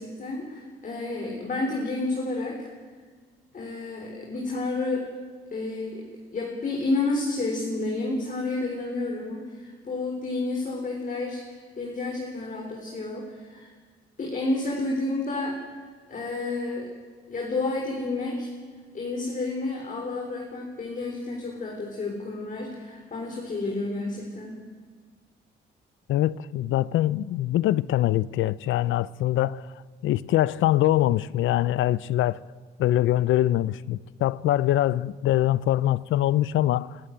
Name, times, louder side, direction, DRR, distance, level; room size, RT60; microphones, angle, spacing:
voice 1, 0.0-2.7 3.5-5.1 5.5-13.7 14.2-15.8 16.1-16.9 17.3-18.5 18.9-24.6, left 2 dB, 40° left, 3.7 m, -30 dB
voice 2, 26.1-29.7 30.0-32.4 32.8-37.0, left 14 dB, 80° left, 0.6 m, -23 dB
23.0 x 13.0 x 9.1 m
cardioid pair, 90°, 20 cm